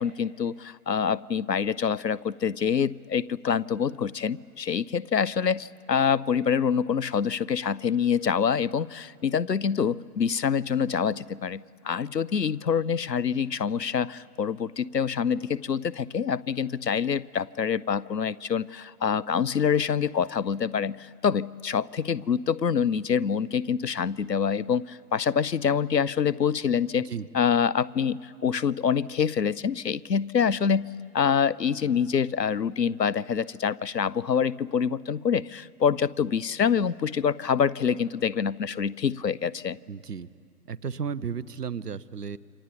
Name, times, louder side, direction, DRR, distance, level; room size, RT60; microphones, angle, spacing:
voice 1, 0.0-39.8, left 7 dB, 85° left, 22 dB, 0.7 m, -26 dB
voice 2, 39.9-40.3 40.7-42.4, right 6 dB, 70° right, 19 dB, 0.9 m, -33 dB
28.0 x 25.5 x 5.3 m, 2.3 s
figure-of-eight pair, 135°, 48 cm